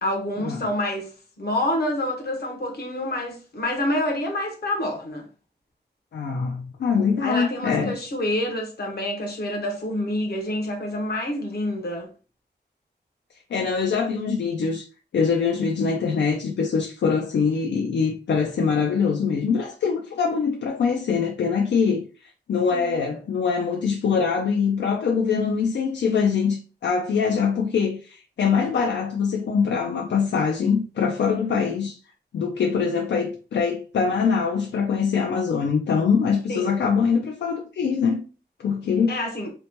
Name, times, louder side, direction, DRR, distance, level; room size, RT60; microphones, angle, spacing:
voice 1, 0.0-5.3 7.2-12.1 22.7-23.1 36.5-36.8 39.1-39.5, left 1 dB, 65° left, 0.9 m, -27 dB
voice 2, 6.1-8.0 13.5-14.9 15.1-32.0 32.3-38.2 38.6-39.2, left 6 dB, 85° left, 0.4 m, -23 dB
2.9 x 2.1 x 2.9 m
wide cardioid pair, 130°, 18 cm